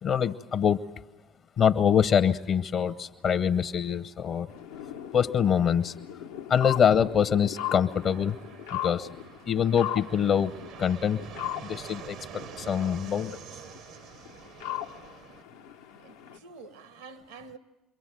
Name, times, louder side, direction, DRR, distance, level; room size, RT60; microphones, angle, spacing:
voice 1, 0.0-0.8 1.6-4.5 5.1-5.9 6.5-8.4 8.7-9.1 9.5-11.2 11.6-13.4, left 8 dB, 55° left, 0.9 m, -25 dB
sound 1, 4.5-16.4, left 12 dB, 85° left, 0.9 m, -39 dB
Fixed-wing aircraft airplane, 7.8-15.4, right 8 dB, 65° right, 0.8 m, -46 dB
voice 2, 16.0-17.6, right 4 dB, 85° right, 1.3 m, -47 dB
28.5 x 23.0 x 7.6 m
hypercardioid pair, 60°, 0 cm